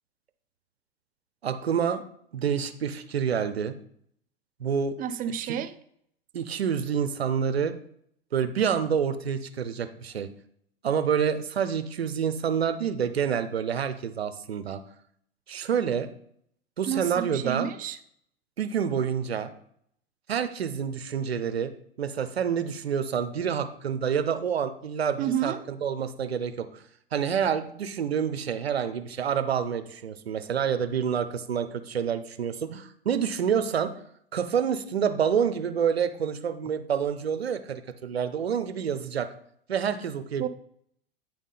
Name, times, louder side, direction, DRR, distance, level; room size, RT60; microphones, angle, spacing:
voice 1, 1.4-2.0 2.3-3.7 4.6-5.0 5.4-5.6 6.3-7.7 8.3-10.3 10.8-14.8 15.5-16.1 16.8-17.7 18.6-19.5 20.3-21.7 22.0-25.5 25.8-26.8 27.1-33.9 34.3-39.3 39.7-40.5, right 7 dB, 85° right, 10 dB, 0.7 m, -28 dB
voice 2, 5.0-5.7 16.9-18.0 25.2-25.6 40.4-40.5, right 9 dB, 25° right, 11 dB, 0.6 m, -30 dB
9.0 x 3.7 x 5.5 m, 0.67 s
hypercardioid pair, 95°, 30 cm